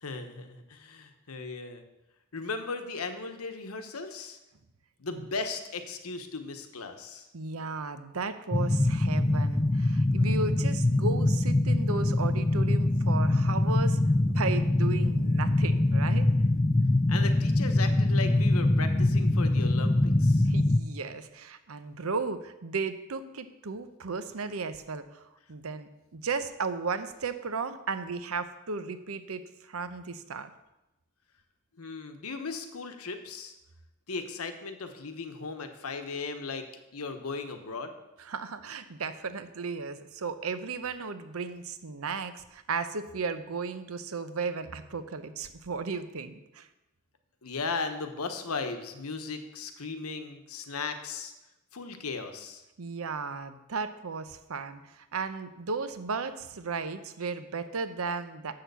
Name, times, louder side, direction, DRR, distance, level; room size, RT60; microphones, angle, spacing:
voice 1, 0.0-1.8 2.3-4.4 5.0-7.3 17.1-20.5 31.8-33.5 34.1-36.6 36.9-37.9 47.4-51.3 51.7-52.6, left 4 dB, 85° left, 7 dB, 1.0 m, -37 dB
voice 2, 7.3-14.0 14.3-16.3 20.5-25.2 25.5-30.5 31.8-31.9 38.2-46.7 52.8-58.5, right 4 dB, 75° right, 11 dB, 0.7 m, -35 dB
sound 1, 8.5-20.8, left 2 dB, 15° left, 0.3 m, -24 dB
7.6 x 6.5 x 6.8 m, 0.96 s
head